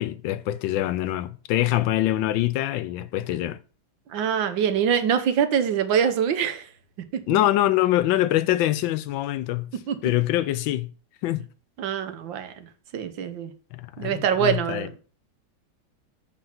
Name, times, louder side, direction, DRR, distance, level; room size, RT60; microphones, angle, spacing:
voice 1, 0.0-3.6 7.3-9.7 10.0-10.9 11.2-11.5 13.7-14.9, left 14 dB, 80° left, 1.3 m, -24 dB
voice 2, 4.1-6.7 7.3-7.4 9.9-10.0 11.8-12.7 12.9-13.5 14.0-15.0, right 8 dB, 75° right, 1.6 m, -24 dB
7.8 x 4.5 x 5.7 m
omnidirectional pair, 2.1 m